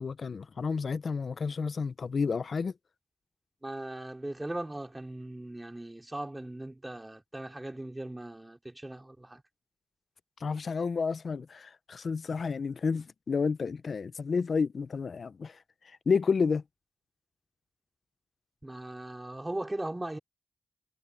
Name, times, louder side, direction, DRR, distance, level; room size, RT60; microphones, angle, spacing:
voice 1, 0.0-2.7 10.4-16.6, left 5 dB, 65° left, 0.6 m, -31 dB
voice 2, 3.6-9.4 18.6-20.2, right 1 dB, 20° right, 3.7 m, -39 dB
cardioid pair, 60°, 0 cm